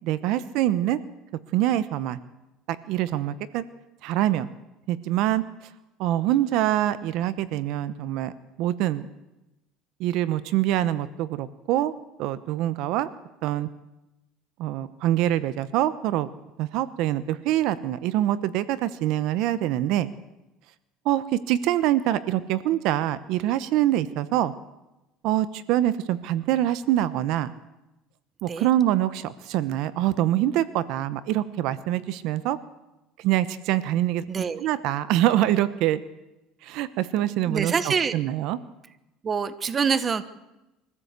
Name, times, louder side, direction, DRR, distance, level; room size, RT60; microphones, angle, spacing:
voice 1, 0.0-1.0 1.5-2.2 2.8-3.6 4.0-4.5 4.9-5.4 6.0-8.3 8.6-9.1 10.0-11.9 12.2-13.1 13.4-13.7 14.6-16.3 16.6-20.1 21.0-24.5 25.2-27.5 28.4-32.6 33.2-34.2 34.6-36.0 36.6-38.6, right 13 dB, 60° right, 15 dB, 0.9 m, -25 dB
voice 2, 34.3-34.7 37.5-38.2 39.2-40.2, right 6 dB, 25° right, 14 dB, 1.0 m, -25 dB
23.5 x 14.5 x 8.2 m, 0.98 s
cardioid pair, 140°, 0 cm